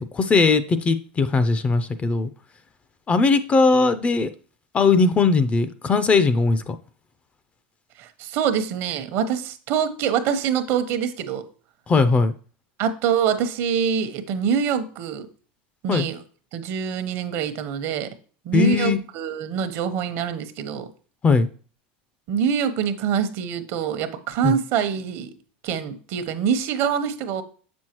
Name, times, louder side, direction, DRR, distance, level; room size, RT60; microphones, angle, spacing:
voice 1, 0.1-2.3 3.1-4.3 4.7-6.8 11.9-12.3 15.9-16.1 18.5-19.0 21.2-21.5 24.4-24.6, left 4 dB, 25° left, 0.5 m, -19 dB
voice 2, 8.0-11.4 12.8-15.3 15.8-16.2 16.5-18.1 18.4-20.9 22.3-25.3 25.6-27.4, right 7 dB, 55° right, 0.9 m, -25 dB
7.2 x 6.2 x 3.0 m
supercardioid pair, 110°, 6 cm